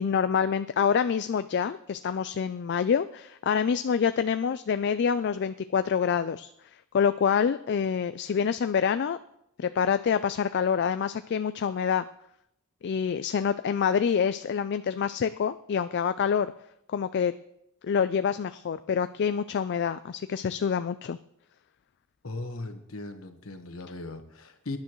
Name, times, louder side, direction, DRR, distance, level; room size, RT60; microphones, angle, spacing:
voice 1, 0.0-6.5 6.9-9.2 9.6-12.0 12.8-16.5 16.9-17.3 17.8-21.2, left 7 dB, 55° left, 11 dB, 0.3 m, -26 dB
voice 2, 22.2-24.8, left 2 dB, 70° left, 5 dB, 1.3 m, -38 dB
23.0 x 10.5 x 3.1 m, 0.80 s
head